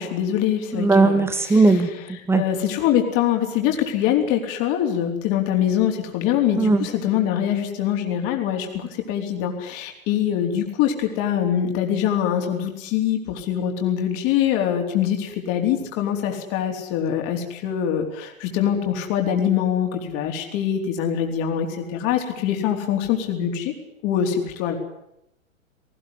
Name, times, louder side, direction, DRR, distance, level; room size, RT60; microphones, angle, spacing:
voice 1, 0.0-1.2 2.3-23.7 24.0-24.8, left 9 dB, 35° left, 3 dB, 4.2 m, -23 dB
voice 2, 0.7-2.4 6.6-6.9, right 3 dB, 5° right, 10 dB, 1.8 m, -18 dB
19.5 x 19.0 x 9.9 m, 0.82 s
figure-of-eight pair, 110°, 40 cm